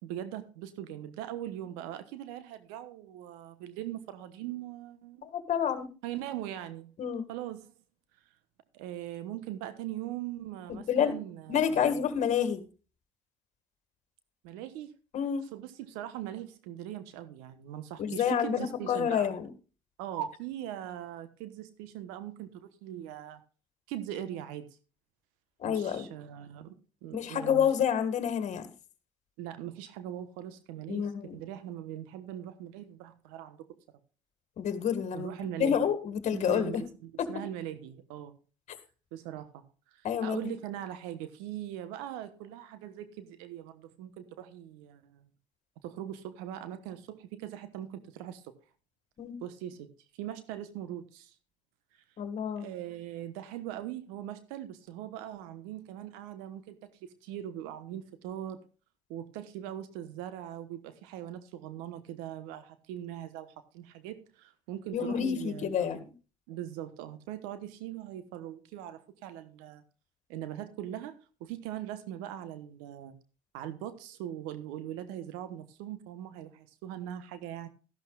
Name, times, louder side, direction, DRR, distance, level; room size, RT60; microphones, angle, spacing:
voice 1, 0.0-5.3 6.0-6.9 7.3-7.6 8.7-12.0 14.4-14.9 15.5-19.3 20.0-23.4 23.9-24.6 25.6-26.7 27.0-27.7 29.4-33.7 35.1-35.9 36.3-38.4 39.1-39.6 39.9-45.2 45.8-48.5 49.4-49.9 50.2-51.3 52.6-58.6 59.1-66.1 66.5-69.8 70.3-71.1 71.4-73.1 73.5-77.7, right 11 dB, 80° right, 12 dB, 1.1 m, -41 dB
voice 2, 5.2-5.9 7.0-7.2 10.7-11.1 11.5-12.6 15.1-15.5 18.0-19.5 25.6-26.1 27.1-28.7 30.9-31.4 34.6-35.3 35.6-36.8 37.2-37.3 38.7-38.8 40.0-40.5 49.2-49.4 52.2-52.7 64.9-66.0, left 8 dB, 50° left, 10 dB, 1.9 m, -29 dB
13.0 x 12.0 x 2.3 m, 0.34 s
hypercardioid pair, 70°, 15 cm